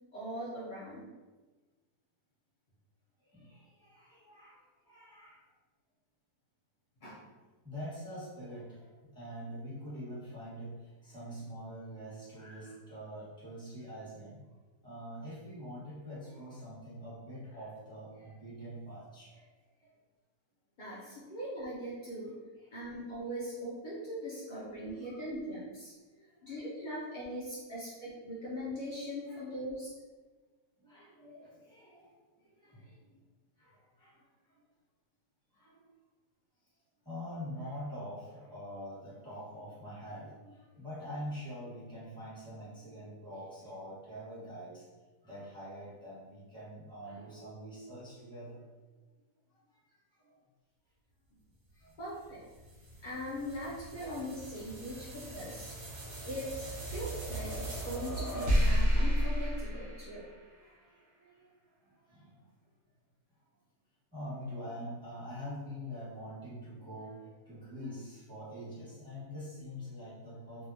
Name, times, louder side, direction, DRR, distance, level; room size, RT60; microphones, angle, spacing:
voice 1, 0.1-1.1 7.0-7.3 20.8-22.3 22.7-25.9 26.4-29.9 52.0-52.4 53.0-55.7 56.2-60.3, equal, 75° left, -9 dB, 0.4 m, -40 dB
voice 2, 3.3-5.4 7.6-8.9 9.1-14.4 14.8-19.5 19.8-19.9 20.8-21.1 22.6-22.7 25.0-25.2 26.4-26.5 29.2-29.6 30.8-33.1 33.6-34.2 35.5-35.8 37.0-44.8 45.2-48.8 50.2-50.4 51.7-52.0 54.0-54.1 54.9-55.1 60.5-61.5 61.8-62.3 64.1-70.7, equal, 5° left, -10 dB, 1.0 m, -45 dB
sound 1, 52.0-60.6, equal, 60° right, 0.5 m, -33 dB
2.7 x 2.3 x 2.7 m, 1.2 s
omnidirectional pair, 1.8 m